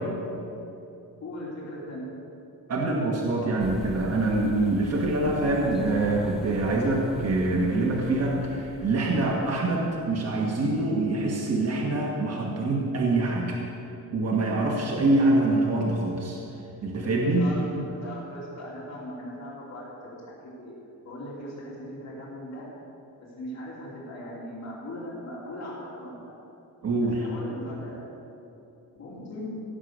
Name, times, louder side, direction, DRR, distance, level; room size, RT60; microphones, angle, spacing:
voice 1, 1.2-2.1 5.3-5.6 17.0-20.1 20.6-20.7 21.0-22.7 23.4-26.3 27.0-28.1 28.9-29.6, left 1 dB, 50° left, -6 dB, 2.9 m, -39 dB
voice 2, 2.7-13.6 14.1-16.4 16.8-17.5 26.8-27.2, right 2 dB, 45° right, -2 dB, 1.6 m, -25 dB
sound 1, 3.6-9.9, left 1 dB, ahead, 1.2 m, -43 dB
17.0 x 6.6 x 8.0 m, 2.8 s
cardioid pair, 155°, 35 cm